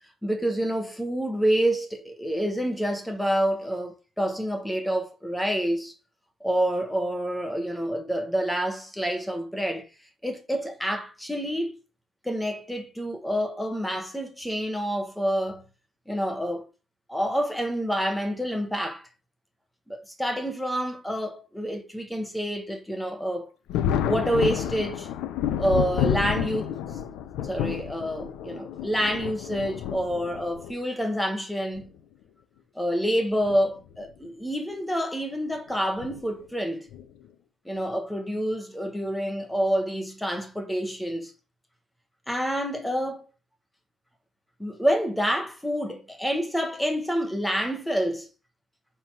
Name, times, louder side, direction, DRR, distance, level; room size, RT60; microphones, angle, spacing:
voice 1, 0.2-5.9 6.4-9.8 10.2-11.7 12.2-15.6 16.1-16.6 17.1-19.0 19.9-23.5 24.1-25.1 25.6-26.7 27.5-31.9 32.8-36.9 37.6-41.3 42.3-43.3 44.6-48.3, equal, 5° left, 1.3 m, -28 dB
Thunder, 23.7-30.7 31.8-31.9 33.3-33.6 33.9-34.0 36.0-36.2 36.9-37.3, left 9 dB, 85° left, 0.9 m, -30 dB
7.9 x 3.7 x 6.1 m
cardioid pair, 175°, 0 cm